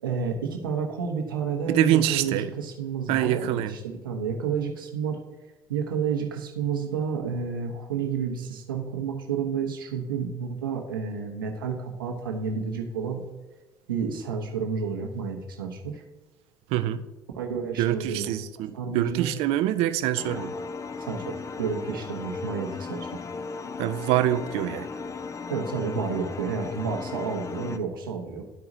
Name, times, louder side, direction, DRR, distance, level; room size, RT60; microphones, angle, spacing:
voice 1, 0.0-5.2 5.7-13.2 13.9-16.0 17.3-18.5 18.7-19.3 21.0-23.2 25.5-28.4, right 6 dB, 80° right, 2 dB, 1.0 m, -30 dB
voice 2, 1.7-2.5 3.1-3.7 16.7-17.0 17.8-20.5 23.8-24.9, right 12 dB, 60° right, 11 dB, 0.5 m, -25 dB
sound 1, 20.2-27.8, left 4 dB, 30° left, 0.5 m, -36 dB
12.0 x 4.7 x 2.6 m, 1.2 s
figure-of-eight pair, 55°, 11 cm